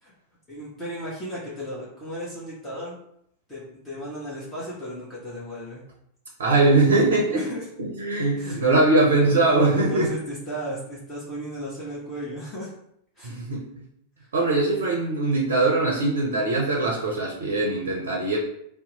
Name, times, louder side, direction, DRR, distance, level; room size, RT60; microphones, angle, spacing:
voice 1, 0.5-3.0 3.5-5.8 7.3-7.6 8.3-8.6 9.6-12.7 13.2-13.4, equal, 20° left, -8 dB, 1.0 m, -35 dB
voice 2, 6.4-7.4 7.8-10.1 13.2-13.6 14.3-18.4, right 2 dB, 65° right, -1 dB, 0.5 m, -21 dB
2.8 x 2.0 x 3.8 m, 0.74 s
figure-of-eight pair, 90°, 0 cm